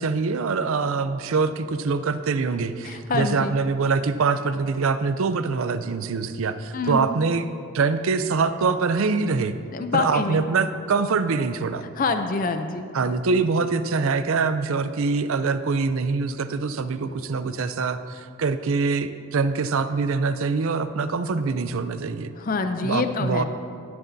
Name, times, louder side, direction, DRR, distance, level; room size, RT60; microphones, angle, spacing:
voice 1, 0.0-7.5 7.7-9.5 9.9-11.9 12.9-22.3 22.8-23.4, right 4 dB, 65° right, 12 dB, 0.5 m, -24 dB
voice 2, 2.8-3.6 6.7-7.0 9.7-10.4 12.0-12.9 22.4-23.4, left 4 dB, 40° left, 7 dB, 0.4 m, -26 dB
12.0 x 11.5 x 2.7 m, 2.3 s
head